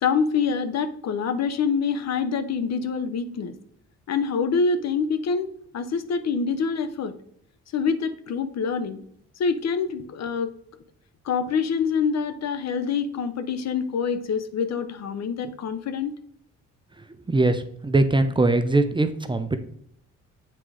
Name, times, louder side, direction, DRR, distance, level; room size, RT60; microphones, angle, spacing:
voice 1, 0.0-3.5 4.1-5.5 5.7-7.1 7.7-9.0 9.4-10.5 11.2-16.1, left 5 dB, 60° left, 10 dB, 0.8 m, -26 dB
voice 2, 17.3-19.6, right 2 dB, 15° right, 9 dB, 0.6 m, -21 dB
7.7 x 3.8 x 4.8 m, 0.67 s
cardioid pair, 90°, 30 cm